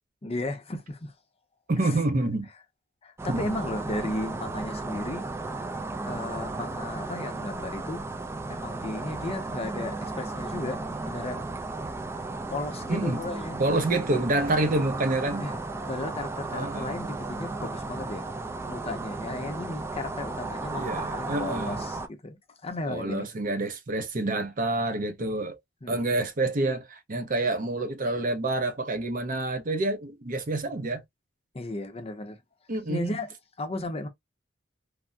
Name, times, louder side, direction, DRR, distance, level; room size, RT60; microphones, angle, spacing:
voice 1, 0.2-1.1 1.8-2.0 3.0-5.3 6.0-8.0 8.5-11.5 12.5-13.6 15.4-15.6 15.9-18.3 18.7-23.3 25.8-26.0 31.5-32.4 32.9-33.3 33.6-34.1, left 2 dB, 30° left, 0.6 m, -35 dB
voice 2, 1.7-2.5 3.3-3.5 12.9-13.2 13.6-15.4 16.5-16.9 20.7-21.8 22.9-25.6 25.9-31.0 32.7-33.2, right 2 dB, 45° right, 0.6 m, -28 dB
sound 1, 3.2-22.1, right 3 dB, 15° right, 0.3 m, -35 dB
3.3 x 2.0 x 2.6 m
head